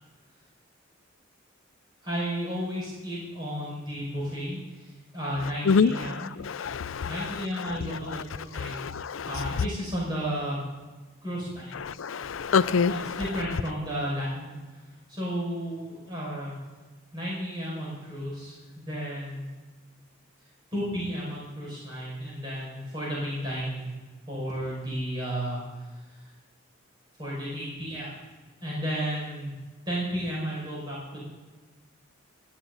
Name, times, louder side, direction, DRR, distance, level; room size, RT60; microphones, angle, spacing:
voice 1, 2.0-6.4 7.0-10.6 11.2-11.8 12.9-14.6 15.1-16.6 17.1-19.5 20.7-23.9 24.3-26.2 27.2-28.1 28.6-29.5 29.9-31.2, equal, 20° right, 5.9 m, -33 dB
voice 2, 5.7-7.3 8.6-9.3 11.8-13.2, left 5 dB, 75° left, 0.5 m, -26 dB
18.0 x 13.5 x 4.0 m
head